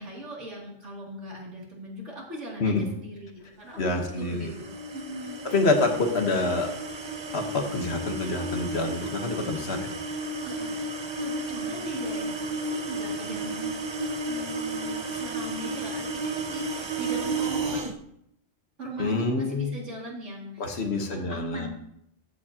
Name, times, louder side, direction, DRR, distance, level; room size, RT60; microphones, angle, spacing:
voice 1, 0.0-5.4 10.4-10.7 11.2-13.7 14.3-17.8 18.8-20.8 21.1-21.7, equal, 80° right, -4 dB, 3.0 m, -39 dB
voice 2, 3.8-4.5 5.4-6.7 7.3-10.0 19.0-19.8 20.6-21.7, left 3 dB, 65° left, 4 dB, 1.4 m, -27 dB
sound 1, 4.0-18.0, right 2 dB, 35° right, 0.5 m, -33 dB
14.5 x 7.4 x 2.8 m, 0.75 s
omnidirectional pair, 1.2 m